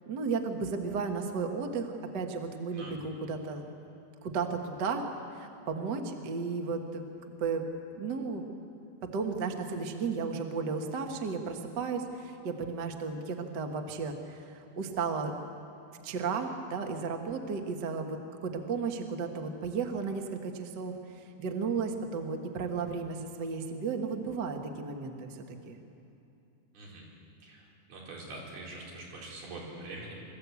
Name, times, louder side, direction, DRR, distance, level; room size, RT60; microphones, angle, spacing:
voice 1, 0.1-3.7 4.2-5.0 5.3-7.6 7.9-8.4 9.1-15.3 16.0-25.8, right 5 dB, 90° right, 4 dB, 0.9 m, -34 dB
voice 2, 26.7-27.1 27.4-27.6 27.9-30.2, right 2 dB, 70° right, -4 dB, 6.2 m, -44 dB
25.0 x 14.5 x 8.3 m, 2.8 s
omnidirectional pair, 4.5 m